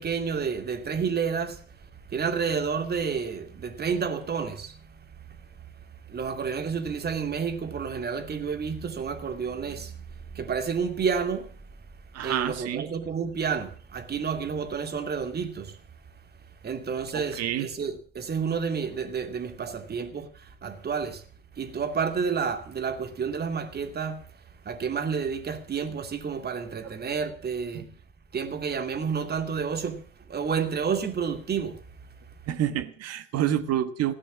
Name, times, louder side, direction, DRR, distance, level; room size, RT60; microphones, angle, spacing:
voice 1, 0.0-5.5 6.1-11.5 12.2-15.8 16.6-21.2 21.5-24.3 24.6-27.9 28.3-30.0 30.3-31.8, right 6 dB, 25° right, 2.7 m, -30 dB
voice 2, 12.1-12.9 17.1-17.7 19.7-19.8 27.7-27.8 32.5-34.1, right 11 dB, 40° right, 1.7 m, -28 dB
17.0 x 10.0 x 7.2 m
figure-of-eight pair, 80°, 38 cm